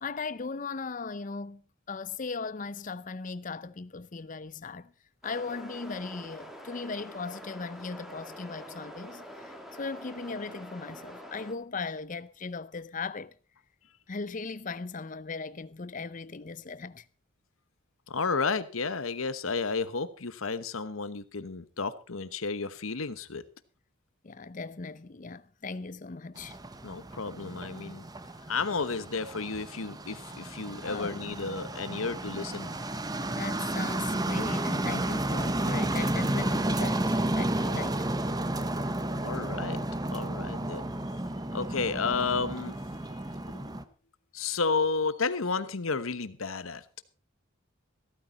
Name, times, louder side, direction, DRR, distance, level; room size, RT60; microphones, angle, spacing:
voice 1, 0.0-1.6 1.9-4.9 5.2-13.3 14.1-17.1 24.2-26.6 30.8-31.2 33.3-38.0, left 4 dB, 40° left, 0.6 m, -38 dB
sound 1, 5.2-11.5, equal, ahead, 2.0 m, -46 dB
voice 2, 18.1-23.4 26.8-28.0 28.5-32.7 33.2-33.3 39.2-40.8 41.5-42.8 43.1-43.2 43.5-43.8 44.3-46.8, left 4 dB, 85° left, 1.1 m, -32 dB
sound 2, 26.4-43.8, right 1 dB, 20° right, 0.8 m, -32 dB
15.0 x 13.5 x 4.2 m
head